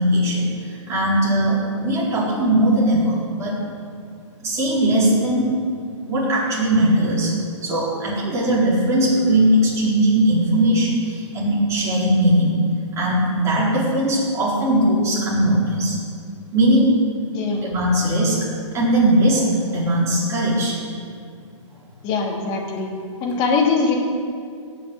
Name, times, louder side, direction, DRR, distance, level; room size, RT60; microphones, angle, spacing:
voice 1, 0.0-3.6 4.4-5.5 6.1-7.3 7.6-12.6 12.9-16.0 16.5-17.0 17.6-18.5 18.7-20.8, right 1 dB, 15° right, -6 dB, 4.5 m, -19 dB
voice 2, 22.0-22.9 23.2-24.0, left 4 dB, 30° left, -1 dB, 2.8 m, -21 dB
17.5 x 6.6 x 8.4 m, 2.3 s
hypercardioid pair, 145°, 16 cm